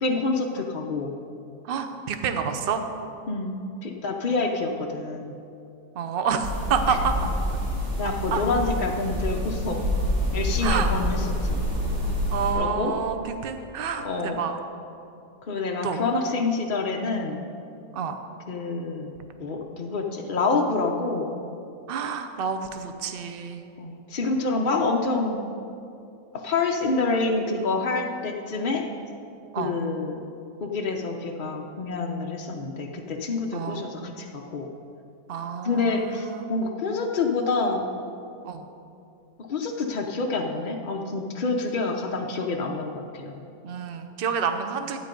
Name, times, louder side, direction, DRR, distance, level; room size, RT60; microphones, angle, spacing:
voice 1, 0.0-1.1 3.3-5.3 8.0-9.9 10.3-11.7 12.5-12.9 14.0-14.4 15.5-17.4 18.5-21.4 23.8-25.4 26.3-28.8 29.6-30.2 30.6-34.7 35.6-37.9 39.5-43.4, left 3 dB, 50° left, 0 dB, 0.6 m, -27 dB
voice 2, 1.6-2.8 5.9-7.1 8.3-8.4 10.6-10.9 12.3-14.6 15.8-16.0 17.9-18.1 21.9-23.6 29.5-29.7 33.5-33.8 35.3-36.5 38.4-38.7 43.6-45.0, right 6 dB, 50° right, 7 dB, 0.7 m, -28 dB
sound 1, 6.4-12.5, equal, 65° right, 3.3 m, -27 dB
12.5 x 9.1 x 5.2 m, 2.6 s
omnidirectional pair, 1.8 m